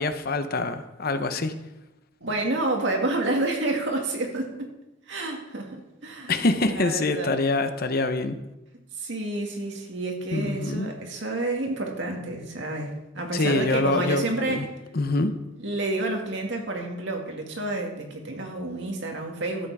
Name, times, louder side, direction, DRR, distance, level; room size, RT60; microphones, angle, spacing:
voice 1, 0.0-1.5 6.3-8.4 10.3-10.9 13.3-14.7 14.9-15.3, left 2 dB, 50° left, 9 dB, 0.8 m, -25 dB
voice 2, 2.2-4.7 5.1-5.8 6.0-6.3 6.6-7.3 8.9-14.8 15.6-19.7, right 2 dB, 60° right, 1 dB, 2.1 m, -29 dB
13.0 x 8.2 x 4.8 m, 0.97 s
head